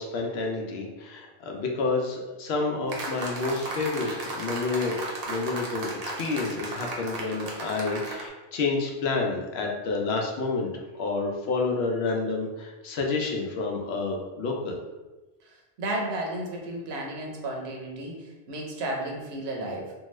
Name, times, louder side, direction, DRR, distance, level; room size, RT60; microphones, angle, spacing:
voice 1, 0.0-14.8, left 3 dB, 75° left, 0 dB, 0.8 m, -29 dB
sound 1, 2.9-8.3, right 2 dB, 50° right, 0.5 m, -35 dB
voice 2, 15.4-19.9, right 1 dB, 75° right, 0 dB, 0.9 m, -33 dB
2.7 x 2.3 x 3.0 m, 1.1 s
omnidirectional pair, 1.1 m